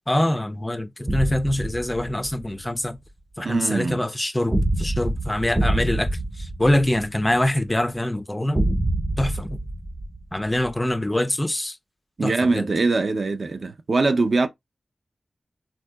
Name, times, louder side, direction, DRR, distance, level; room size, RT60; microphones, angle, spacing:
voice 1, 0.1-3.0 3.4-6.1 6.4-8.6 9.2-9.6 10.3-11.8 12.2-12.7, left 1 dB, 15° left, 0.3 m, -24 dB
sound 1, 1.1-2.4 4.5-7.5 8.5-10.7, right 1 dB, 20° right, 0.7 m, -26 dB
voice 2, 3.4-4.0 12.2-14.5, right 3 dB, 55° right, 0.4 m, -22 dB
3.7 x 2.6 x 2.2 m
wide cardioid pair, 85°, 0 cm